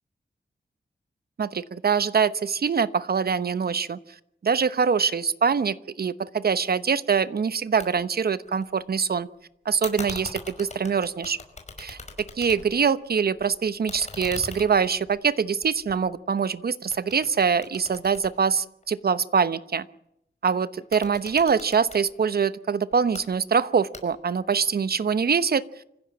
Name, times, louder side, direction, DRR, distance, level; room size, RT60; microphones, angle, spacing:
voice 1, 1.4-4.0 4.4-9.3 9.6-11.4 12.4-19.8 20.4-25.6, right 6 dB, 60° right, 15 dB, 1.0 m, -24 dB
sound 1, 7.8-7.9 8.2-9.0 9.8-12.9 13.2-16.5 16.9-19.1 20.8-22.0 22.9-23.2 23.9-24.4, left 3 dB, 40° left, 5.4 m, -41 dB
25.5 x 15.5 x 8.6 m, 0.78 s
wide cardioid pair, 90°, 18 cm